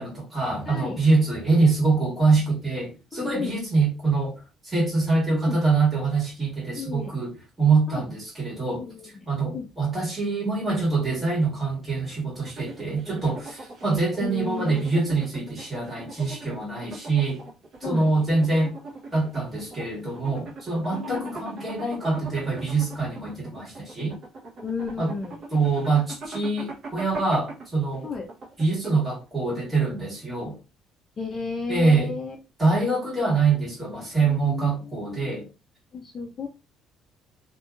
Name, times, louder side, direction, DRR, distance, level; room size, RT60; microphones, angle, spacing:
voice 1, 0.0-4.3 4.6-17.4 17.8-18.7 19.1-24.2 25.0-25.1 25.5-28.1 28.6-30.6 31.7-32.2 32.6-35.5, right 3 dB, 15° right, 1.7 m, -24 dB
voice 2, 0.7-1.0 3.1-3.5 5.3-5.6 6.8-7.1 7.9-8.0 8.7-9.3 9.5-9.7 14.2-14.9 17.8-18.1 20.9-21.3 24.6-25.4 28.0-28.2 31.2-32.4 34.2-35.4 35.9-36.5, left 5 dB, 30° left, 0.5 m, -33 dB
sound 1, 12.4-29.2, right 3 dB, 40° right, 0.9 m, -41 dB
2.8 x 2.6 x 2.3 m
cardioid pair, 130°, 0 cm